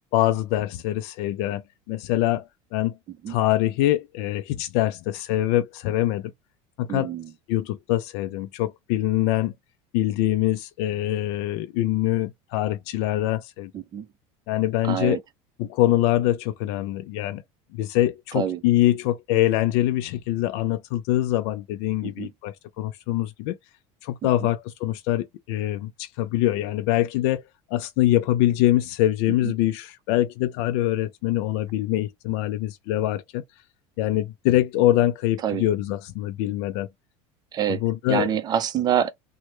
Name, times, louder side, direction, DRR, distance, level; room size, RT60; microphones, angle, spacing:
voice 1, 0.1-1.6 1.9-2.4 2.7-2.9 3.3-6.3 6.8-7.1 7.5-9.5 9.9-13.7 14.5-15.2 15.6-17.4 17.7-23.6 24.0-27.4 27.7-33.4 34.0-36.9 37.7-38.3, left 14 dB, 70° left, 0.4 m, -24 dB
voice 2, 6.9-7.3 13.7-14.1 14.8-15.2 18.3-18.6 22.0-22.3 24.2-24.5 29.4-29.5 35.4-35.6 37.5-37.8 38.1-39.1, right 9 dB, 30° right, 0.5 m, -26 dB
3.1 x 2.1 x 2.9 m
cardioid pair, 145°, 14 cm